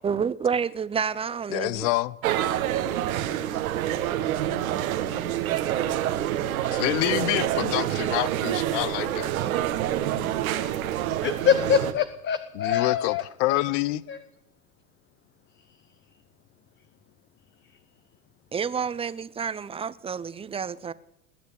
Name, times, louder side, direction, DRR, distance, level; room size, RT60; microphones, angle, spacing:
voice 1, 0.0-1.9 18.5-20.9, right 6 dB, 15° right, 0.7 m, -29 dB
voice 2, 1.5-2.1 6.7-9.3 12.5-14.0, left 17 dB, 55° left, 0.9 m, -27 dB
sound 1, 2.2-11.9, right 12 dB, 70° right, 1.6 m, -27 dB
voice 3, 11.2-13.6 14.1-14.2, left 8 dB, 25° left, 0.9 m, -24 dB
20.5 x 8.1 x 8.5 m
hypercardioid pair, 100°, 43 cm